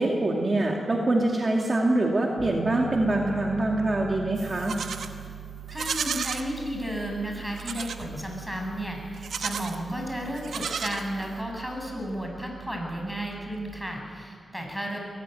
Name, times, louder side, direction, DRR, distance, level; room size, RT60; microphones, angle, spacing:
voice 1, 0.0-4.8, right 2 dB, 40° right, 0 dB, 2.4 m, -24 dB
Piano, 2.4-13.7, right 5 dB, 85° left, 2.9 m, -43 dB
Livestock farm animals working animals, 4.4-5.1 5.7-6.5 7.6-8.1 9.1-9.8 10.3-11.4, right 6 dB, 80° right, 1.1 m, -33 dB
voice 2, 5.7-15.0, equal, 5° right, 1 dB, 7.2 m, -33 dB
23.0 x 15.0 x 9.2 m, 2.4 s
cardioid pair, 55°, 0 cm